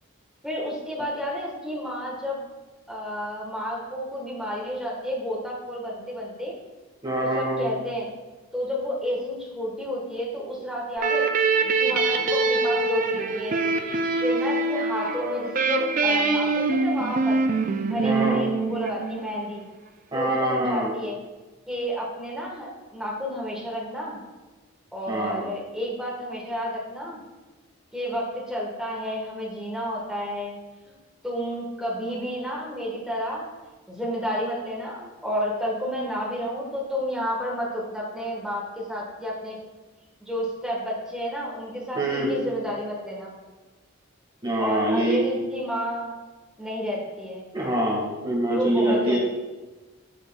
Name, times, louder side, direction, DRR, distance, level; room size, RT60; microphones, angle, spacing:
voice 1, 0.4-2.4 2.9-6.6 7.2-8.1 8.5-11.3 11.8-13.6 14.2-17.4 17.9-19.6 20.1-21.2 21.7-24.2 24.9-27.2 27.9-30.6 30.9-31.0 31.2-33.5 33.9-39.6 40.2-43.3 44.6-46.1 46.6-47.5 48.5-49.2, equal, ahead, -4 dB, 1.3 m, -31 dB
voice 2, 7.0-7.7 18.0-18.4 20.1-20.9 25.1-25.4 41.9-42.3 44.4-45.2 47.5-49.2, right 1 dB, 20° right, -4 dB, 1.6 m, -24 dB
sound 1, 11.0-19.5, right 3 dB, 40° right, 0.4 m, -24 dB
7.7 x 6.3 x 2.3 m, 1.2 s
head